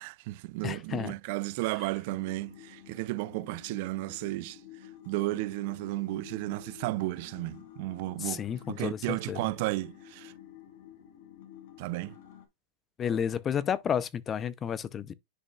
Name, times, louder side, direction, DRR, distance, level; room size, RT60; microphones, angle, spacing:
voice 1, 0.0-4.6 5.1-10.3 11.8-12.1, right 20 dB, 60° right, 0.4 m, -33 dB
voice 2, 0.6-1.1 8.2-9.4 13.0-15.1, left 8 dB, 25° left, 0.6 m, -31 dB
sound 1, 2.1-12.4, left 10 dB, 70° left, 2.1 m, -51 dB
10.0 x 5.1 x 2.3 m
hypercardioid pair, 120°, 0 cm